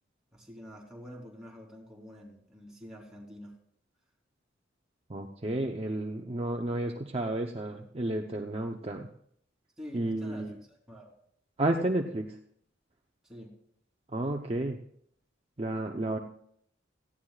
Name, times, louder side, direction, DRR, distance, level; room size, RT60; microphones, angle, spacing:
voice 1, 0.3-3.5 9.8-10.5 10.9-11.1 13.2-13.5, equal, 5° right, -3 dB, 3.4 m, -47 dB
voice 2, 5.1-9.1 9.9-10.5 11.6-12.3 14.1-14.8 15.6-16.2, right 1 dB, 30° right, 2 dB, 0.8 m, -31 dB
17.5 x 14.5 x 2.4 m, 0.67 s
head